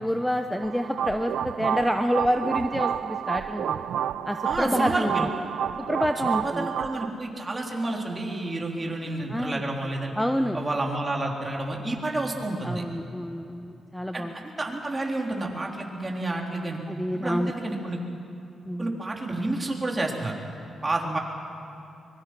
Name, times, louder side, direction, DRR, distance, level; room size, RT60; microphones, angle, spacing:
voice 1, 0.0-3.8 4.2-5.3 5.9-6.7 9.3-9.6 10.2-10.6 12.6-14.3 16.9-17.5 18.7-19.0 21.1-21.2, equal, 5° left, 6 dB, 0.9 m, -28 dB
sound 1, 0.6-7.1, right 9 dB, 85° right, 0.5 m, -30 dB
voice 2, 4.4-5.3 6.2-10.1 10.5-12.8 14.1-16.8 17.1-18.0 18.8-20.3 20.8-21.2, right 2 dB, 25° right, 0 dB, 3.6 m, -30 dB
24.5 x 22.5 x 6.1 m, 2.8 s
cardioid pair, 85°, 0 cm